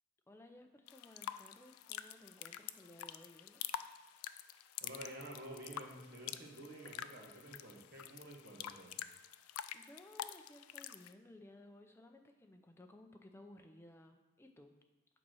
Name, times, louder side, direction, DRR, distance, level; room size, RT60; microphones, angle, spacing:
voice 1, 0.3-3.6 9.7-14.7, left 1 dB, 10° left, 4 dB, 0.5 m, -58 dB
sound 1, 0.9-11.1, left 10 dB, 90° left, 0.4 m, -47 dB
voice 2, 4.8-9.0, right 1 dB, 45° right, 0 dB, 1.4 m, -50 dB
8.9 x 4.2 x 6.2 m, 1.2 s
head